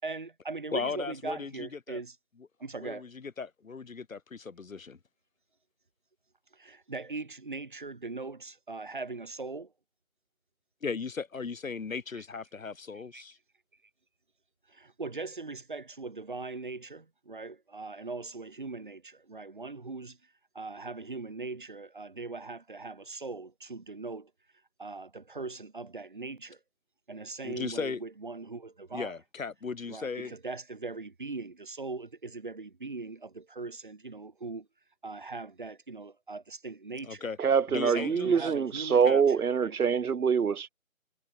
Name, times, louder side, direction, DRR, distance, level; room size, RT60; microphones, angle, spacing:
voice 1, 0.0-2.2 2.6-3.0 6.5-9.7 12.1-12.2 12.9-13.2 14.7-24.3 24.8-26.6 27.1-29.1 29.9-34.7 35.0-37.3 37.9-39.8, right 3 dB, 35° right, 4.1 m, -40 dB
voice 2, 0.7-2.0 2.8-5.0 10.8-13.4 27.4-28.0 28.9-30.3 37.0-37.4 37.7-38.5 39.0-39.2, left 5 dB, 70° left, 1.0 m, -37 dB
voice 3, 37.4-40.7, right 6 dB, 85° right, 0.8 m, -25 dB
figure-of-eight pair, 175°, 43 cm